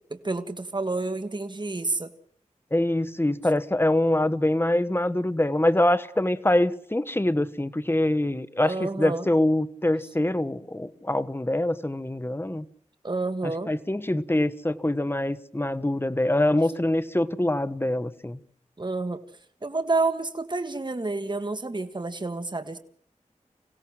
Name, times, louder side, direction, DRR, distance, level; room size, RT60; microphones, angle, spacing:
voice 1, 0.1-2.1 8.6-9.3 13.0-13.7 18.8-19.2 19.6-22.8, right 3 dB, 35° right, 1.8 m, -29 dB
voice 2, 2.7-12.6 13.4-18.4, left 1 dB, 20° left, 1.2 m, -24 dB
26.5 x 16.5 x 7.6 m
wide cardioid pair, 60°, 13 cm